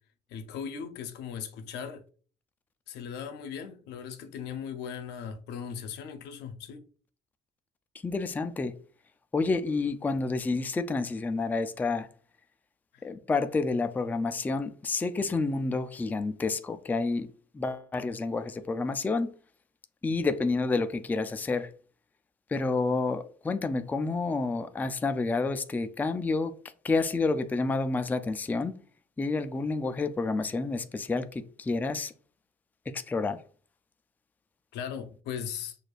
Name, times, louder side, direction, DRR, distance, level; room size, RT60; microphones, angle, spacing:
voice 1, 0.3-2.0 2.9-6.8 12.9-13.1 34.7-35.8, left 7 dB, 85° left, 0.6 m, -38 dB
voice 2, 8.0-8.7 9.3-12.1 13.0-17.3 17.5-19.3 20.0-21.7 22.5-26.5 26.8-28.8 29.2-32.1 32.9-33.4, left 3 dB, 10° left, 0.3 m, -29 dB
6.3 x 2.5 x 2.4 m
cardioid pair, 110°, 17 cm